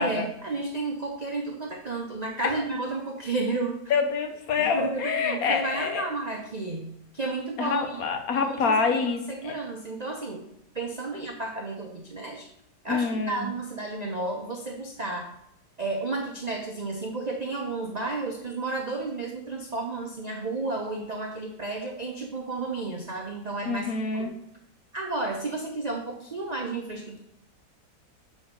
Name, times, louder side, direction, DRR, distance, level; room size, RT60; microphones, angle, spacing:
voice 1, 0.0-3.8 4.7-8.0 8.4-10.4 10.7-12.5 12.8-15.3 15.8-24.3 24.9-27.2, right 3 dB, 70° right, 0 dB, 0.4 m, -32 dB
voice 2, 3.9-6.1 7.6-9.5 12.9-13.5 23.6-24.3, left 5 dB, 60° left, 5 dB, 1.2 m, -26 dB
7.4 x 3.1 x 5.1 m, 0.76 s
omnidirectional pair, 1.8 m